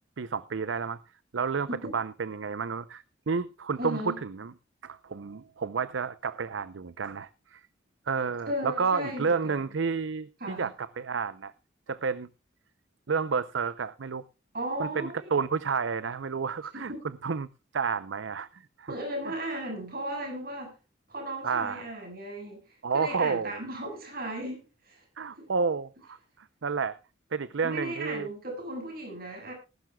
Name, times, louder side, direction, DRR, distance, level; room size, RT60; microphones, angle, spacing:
voice 1, 0.2-1.0 1.3-1.7 1.9-4.5 4.8-7.6 8.1-11.5 11.9-12.3 13.1-14.2 14.8-16.9 17.2-17.5 17.7-18.9 21.4-21.9 22.8-23.6 25.2-27.0 27.3-28.3, right 5 dB, 85° right, 0.6 m, -30 dB
voice 2, 3.8-4.2 8.5-9.6 10.4-10.7 14.5-15.2 16.7-17.0 18.9-20.7 21.1-22.6 22.9-25.0 25.4-25.5 27.6-29.5, right 1 dB, 50° right, 7.2 m, -36 dB
20.0 x 12.0 x 2.3 m
head